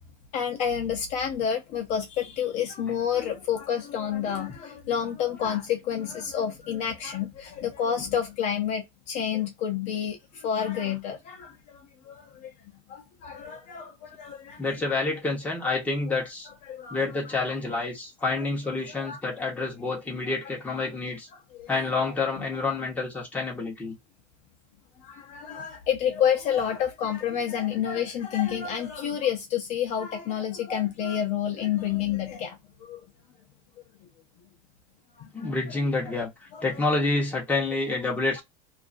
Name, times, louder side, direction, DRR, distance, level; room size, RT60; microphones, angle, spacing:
voice 1, 0.3-12.5 12.9-14.8 16.6-17.0 17.2-17.5 18.4-18.5 18.9-19.2 20.2-20.4 20.7-20.9 21.3-22.1 25.0-33.1 35.2-35.8 36.1-36.2 36.5-36.7, left 9 dB, 40° left, 0.6 m, -29 dB
voice 2, 14.6-16.5 16.9-21.3 21.7-23.9 35.3-38.4, left 3 dB, 10° left, 1.0 m, -28 dB
2.7 x 2.4 x 2.5 m
cardioid pair, 165°, 17 cm